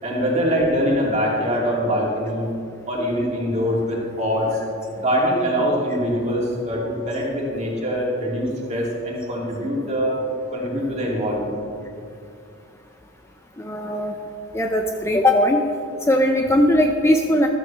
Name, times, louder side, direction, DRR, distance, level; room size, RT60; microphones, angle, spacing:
voice 1, 0.0-2.5 2.9-4.5 5.0-10.2 10.5-11.6, equal, 35° right, -3 dB, 2.7 m, -23 dB
voice 2, 13.6-14.1 14.5-15.6 16.1-17.5, left 1 dB, 15° left, 3 dB, 0.6 m, -19 dB
13.5 x 13.0 x 3.4 m, 2.5 s
head